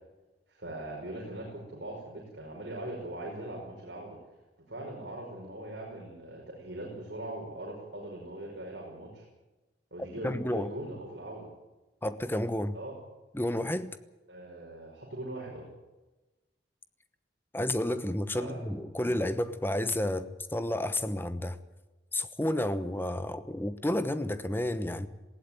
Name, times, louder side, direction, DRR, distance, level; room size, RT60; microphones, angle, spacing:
voice 1, 0.5-4.2 4.7-9.2 9.9-11.5 12.7-12.9 14.3-15.7 18.3-18.6 19.0-19.2, right 1 dB, 65° right, 5.5 m, -41 dB
voice 2, 10.2-10.7 12.0-12.8 13.3-14.0 17.5-21.6 22.1-25.1, left 1 dB, 10° left, 1.0 m, -31 dB
19.5 x 16.0 x 9.2 m
head